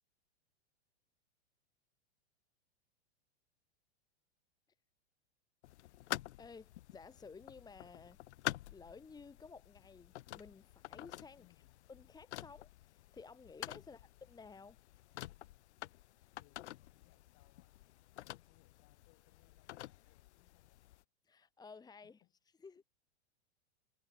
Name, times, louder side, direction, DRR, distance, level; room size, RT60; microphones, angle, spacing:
sound 1, 5.6-21.0, left 15 dB, 85° left, 0.5 m, -48 dB
voice 1, 6.4-8.2 8.7-11.4 11.9-14.8 21.2-22.2 22.6-22.8, left 4 dB, 10° left, 1.6 m, -55 dB
voice 2, 11.3-11.8 13.8-14.1 16.4-21.0 22.0-22.3 22.7-22.8, left 23 dB, 45° left, 5.1 m, -73 dB
hypercardioid pair, 120°, 33 cm